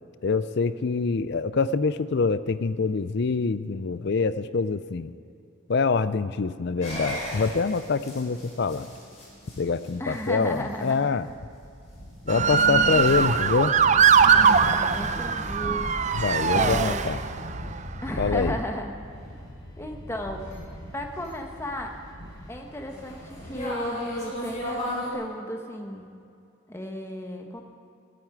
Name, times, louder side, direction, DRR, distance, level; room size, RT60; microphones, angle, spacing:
voice 1, 0.2-5.1 5.7-8.9 9.6-11.3 12.3-13.7 16.1-17.2 18.2-18.6, left 4 dB, 55° left, 14 dB, 0.5 m, -25 dB
sound 1, 6.8-25.1, equal, 35° left, 4.8 m, -38 dB
voice 2, 10.0-11.1 14.9-15.8 16.5-17.0 18.0-18.9 19.8-20.4 20.9-21.9 22.5-26.1 26.7-27.6, left 1 dB, 10° left, 3 dB, 1.3 m, -34 dB
Motor vehicle (road) / Siren, 12.3-17.5 18.2-18.6, right 6 dB, 35° right, 0.5 m, -21 dB
16.5 x 9.4 x 8.9 m, 2.5 s
head